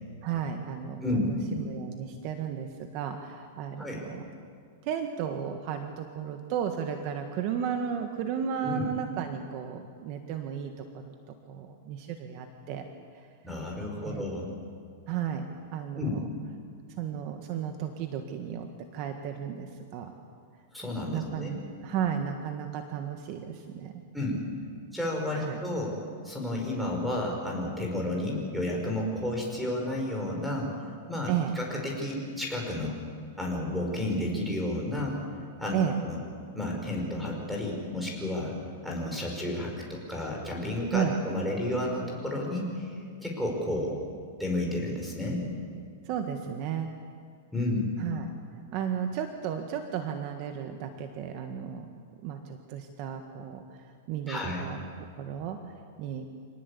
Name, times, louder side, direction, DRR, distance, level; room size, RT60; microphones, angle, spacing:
voice 1, 0.2-4.3 4.8-12.9 13.1-13.3 14.0-14.3 15.1-16.3 17.0-20.1 21.1-24.0 25.3-25.6 31.3-31.6 35.7-36.0 40.9-41.2 46.0-46.9 48.0-48.3 48.7-51.9 52.2-54.9 55.2-56.3, right 8 dB, 40° right, 6 dB, 1.5 m, -34 dB
voice 2, 1.0-1.3 3.8-4.0 8.6-8.8 13.4-14.5 16.0-16.1 20.7-21.6 24.1-24.4 24.9-25.9 26.2-30.7 31.1-33.0 33.4-35.2 35.6-36.2 36.6-38.5 38.8-42.9 43.2-44.0 44.4-45.4 47.5-48.0 54.3-54.6, left 1 dB, ahead, -1 dB, 5.2 m, -31 dB
26.0 x 19.0 x 8.4 m, 2.3 s
supercardioid pair, 155°, 0 cm